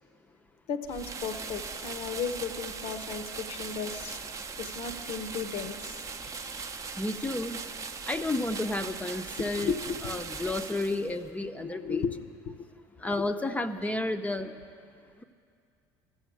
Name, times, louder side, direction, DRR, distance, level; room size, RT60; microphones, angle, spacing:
voice 1, 0.7-4.2 4.6-6.7 9.4-10.1 10.7-10.9 11.5-12.6 13.0-13.3, left 5 dB, 65° left, 10 dB, 0.8 m, -35 dB
sound 1, 0.9-11.3, right 5 dB, 30° right, 0.6 m, -39 dB
voice 2, 7.0-7.6 8.0-9.7 10.0-12.0 13.0-14.5, left 2 dB, 15° left, 8 dB, 0.6 m, -31 dB
13.0 x 7.3 x 8.4 m, 2.3 s
hypercardioid pair, 75°, 11 cm